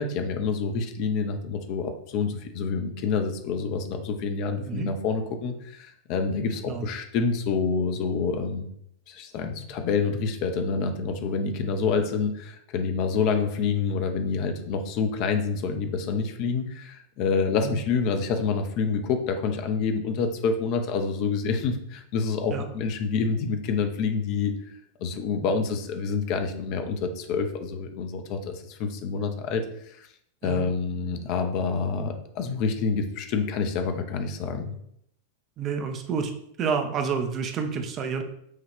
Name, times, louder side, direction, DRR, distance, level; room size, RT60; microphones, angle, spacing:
voice 1, 0.0-8.7 9.1-24.5 25.0-30.1 30.4-34.7, left 5 dB, 45° left, 6 dB, 0.6 m, -27 dB
voice 2, 35.6-36.3 36.6-38.2, right 6 dB, 30° right, 6 dB, 0.6 m, -29 dB
6.3 x 2.4 x 3.5 m, 0.72 s
figure-of-eight pair, 90°, 0 cm